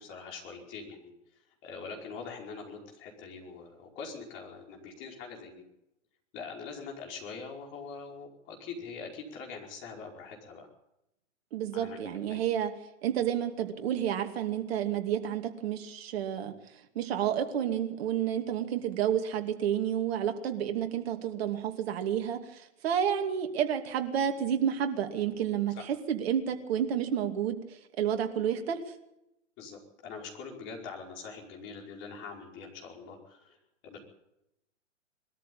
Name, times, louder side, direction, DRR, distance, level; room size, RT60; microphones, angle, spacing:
voice 1, 0.0-5.6 6.3-10.7 11.7-12.4 25.7-25.8 29.6-33.6 33.8-34.0, left 5 dB, 30° left, 1 dB, 5.1 m, -43 dB
voice 2, 11.5-12.7 13.0-16.5 16.9-27.6 28.0-28.8, right 9 dB, 50° right, 6 dB, 2.7 m, -30 dB
22.0 x 13.5 x 8.6 m, 0.86 s
hypercardioid pair, 130°, 39 cm